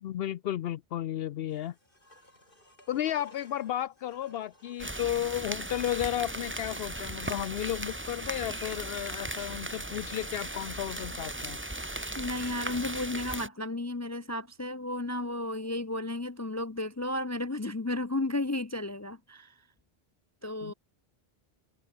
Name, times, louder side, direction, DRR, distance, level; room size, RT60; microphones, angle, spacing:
voice 1, 0.0-1.7 2.9-11.6 20.6-20.7, left 12 dB, 75° left, 0.8 m, -33 dB
sound 1, 1.5-5.1 8.0-8.1, left 1 dB, 55° left, 8.4 m, -57 dB
sound 2, 4.8-13.5, right 1 dB, 10° right, 1.4 m, -37 dB
voice 2, 12.0-19.5 20.4-20.7, left 2 dB, 20° left, 0.4 m, -33 dB
omnidirectional pair, 1.1 m